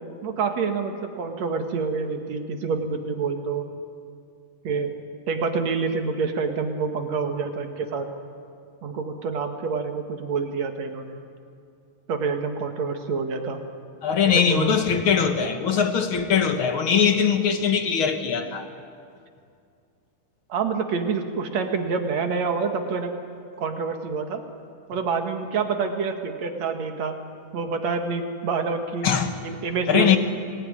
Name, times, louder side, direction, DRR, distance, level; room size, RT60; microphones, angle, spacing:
voice 1, 0.2-3.7 4.6-4.9 5.3-8.1 8.8-11.2 12.1-13.6 14.2-14.8 20.5-23.1 23.6-24.4 24.9-27.1 27.5-29.1 29.4-30.2, right 5 dB, 60° right, 5 dB, 2.7 m, -27 dB
voice 2, 14.0-18.7 29.0-29.3 29.9-30.2, left 7 dB, 50° left, 6 dB, 1.9 m, -21 dB
26.0 x 19.5 x 9.8 m, 2.3 s
omnidirectional pair, 3.8 m